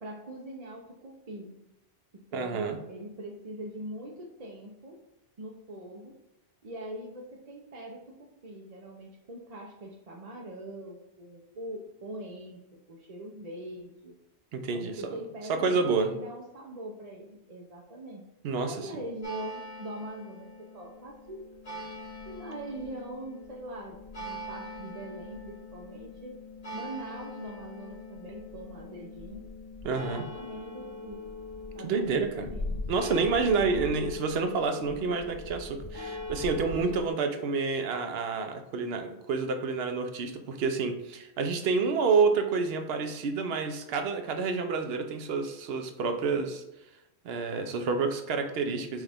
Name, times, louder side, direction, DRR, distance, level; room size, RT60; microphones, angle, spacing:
voice 1, 0.0-1.5 2.3-5.0 5.4-6.2 6.6-12.6 12.9-14.1 14.7-18.2 18.6-21.4 22.3-26.4 26.7-29.5 30.0-31.2 31.7-32.8 33.6-34.0, right 1 dB, 45° right, -2 dB, 0.6 m, -42 dB
voice 2, 2.3-2.8 14.5-15.0 15.5-16.1 18.4-18.9 29.8-30.2 31.8-32.5 32.9-46.6 47.2-49.0, right 4 dB, 70° right, 7 dB, 0.8 m, -28 dB
sound 1, 19.2-37.1, left 2 dB, 65° left, 1.7 m, -41 dB
6.2 x 2.4 x 3.4 m, 0.91 s
omnidirectional pair, 1.1 m